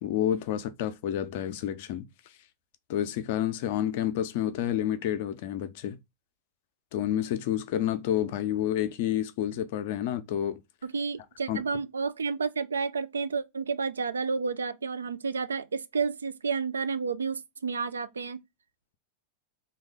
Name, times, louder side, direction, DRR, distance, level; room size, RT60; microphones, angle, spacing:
voice 1, 0.0-2.1 2.9-6.0 6.9-10.6 11.5-11.6, left 11 dB, 50° left, 0.5 m, -29 dB
voice 2, 10.8-18.4, right 5 dB, 70° right, 0.3 m, -31 dB
3.0 x 2.3 x 3.6 m
figure-of-eight pair, 90°, 0 cm